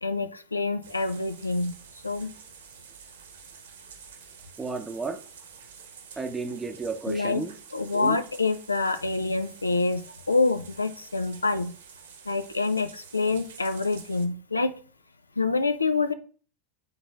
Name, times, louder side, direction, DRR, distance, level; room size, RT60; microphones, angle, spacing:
voice 1, 0.0-1.7 2.0-2.3 7.1-7.4 7.7-10.0 10.3-11.7 12.3-14.7 15.4-16.1, left 3 dB, 80° left, 0.4 m, -26 dB
sound 1, 0.8-14.3, right 7 dB, 60° right, 1.2 m, -49 dB
voice 2, 4.6-5.2 6.2-7.5 7.9-8.2, right 4 dB, 10° right, 0.7 m, -33 dB
10.5 x 4.0 x 2.5 m
figure-of-eight pair, 90°, 0 cm